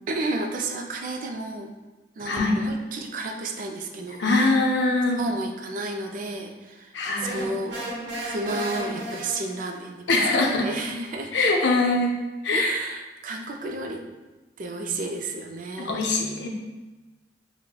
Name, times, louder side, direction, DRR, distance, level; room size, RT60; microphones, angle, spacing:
voice 1, 0.1-1.7 2.2-4.6 5.2-7.8 8.2-10.1 10.3-11.3 12.5-14.0 14.6-16.2, right 2 dB, 50° right, 3 dB, 0.3 m, -32 dB
voice 2, 2.3-2.6 4.2-5.2 6.9-7.4 10.1-10.7 11.3-12.1 12.4-12.8 15.8-16.5, left 2 dB, 75° left, 0 dB, 0.5 m, -22 dB
sound 1, 7.2-9.8, right 1 dB, 85° right, 0.8 m, -34 dB
5.5 x 2.1 x 2.2 m, 1.2 s
head